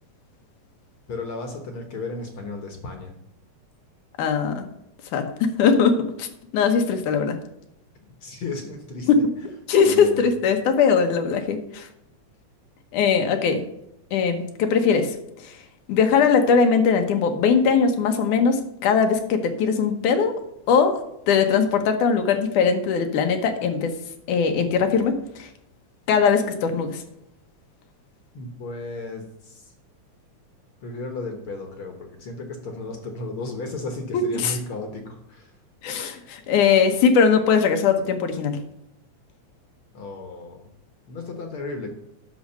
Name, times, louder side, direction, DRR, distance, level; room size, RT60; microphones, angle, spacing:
voice 1, 1.1-3.1 8.2-9.1 9.8-10.2 28.3-29.7 30.8-35.5 39.9-40.7 41.1-41.9, left 3 dB, 55° left, 4 dB, 1.7 m, -34 dB
voice 2, 4.2-4.6 5.1-6.3 6.5-7.4 9.1-9.3 9.7-11.9 12.9-13.6 14.1-15.2 15.4-15.6 15.9-20.4 20.7-21.0 21.3-23.9 24.3-25.5 26.1-27.0 34.1-34.6 35.8-38.6, left 6 dB, 85° left, 6 dB, 2.6 m, -20 dB
10.0 x 6.4 x 6.5 m, 0.81 s
omnidirectional pair, 3.4 m